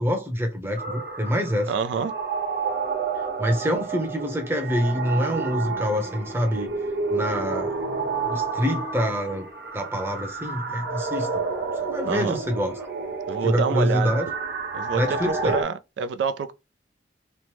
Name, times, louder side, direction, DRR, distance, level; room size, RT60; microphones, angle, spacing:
voice 1, 0.0-1.7 3.4-6.7 7.1-7.7 8.2-9.5 9.7-11.4 11.8-12.9 13.4-14.3 14.9-15.6, equal, 15° right, 0.7 m, -26 dB
sound 1, 0.8-15.6, right 4 dB, 60° right, 0.9 m, -30 dB
voice 2, 1.7-2.1 12.1-12.4 13.3-14.1 14.7-16.5, right 5 dB, 80° right, 0.3 m, -27 dB
3.1 x 2.0 x 2.9 m
head